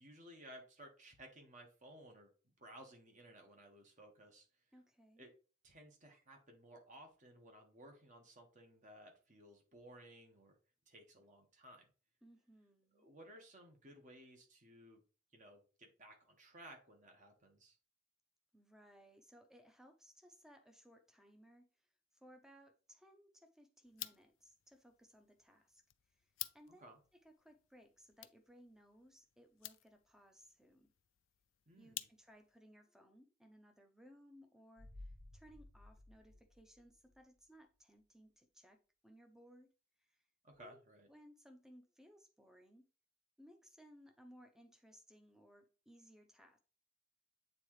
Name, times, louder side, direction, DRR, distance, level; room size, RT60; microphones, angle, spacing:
voice 1, 0.0-2.3 2.6-4.5 5.2-5.3 5.6-10.6 10.9-11.9 12.9-15.0 15.3-17.8 26.8-27.0 31.7-32.1 40.4-41.1, right 1 dB, 40° right, 1.6 m, -58 dB
voice 2, 4.7-5.3 12.2-13.1 18.5-30.9 31.8-39.7 40.0-40.3 40.6-42.8 43.4-46.6, equal, 5° right, 0.8 m, -63 dB
sound 1, 23.8-32.6, left 16 dB, 85° left, 0.4 m, -53 dB
sound 2, 34.8-37.5 37.8-37.9, left 1 dB, 85° right, 3.6 m, -57 dB
8.2 x 3.8 x 3.2 m
head